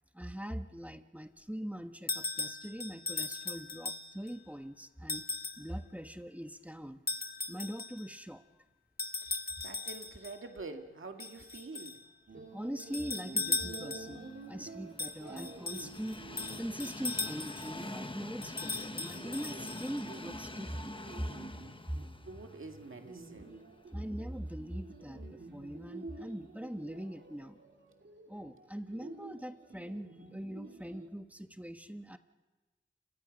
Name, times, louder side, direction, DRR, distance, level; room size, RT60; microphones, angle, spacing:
voice 1, 0.1-5.3 5.6-7.0 7.5-8.4 12.5-16.2 16.6-21.3 21.9-22.0 23.9-27.6 28.3-32.2, equal, 5° right, 8 dB, 1.3 m, -42 dB
sound 1, 2.1-4.3 5.1-5.7 7.1-8.1 9.0-10.4 11.2-12.0 12.8-14.2 15.0-17.8 18.4-20.2, left 3 dB, 50° left, 1.3 m, -38 dB
voice 2, 9.6-12.0 22.3-23.7, right 3 dB, 85° right, 5 dB, 2.0 m, -46 dB
sound 2, 12.3-31.1, right 3 dB, 65° right, 3.4 m, -50 dB
Train, 13.9-24.0 24.4-24.5 25.6-25.7, left 2 dB, 25° left, 1.2 m, -46 dB
29.0 x 24.0 x 5.3 m, 1.3 s
wide cardioid pair, 45°, 20 cm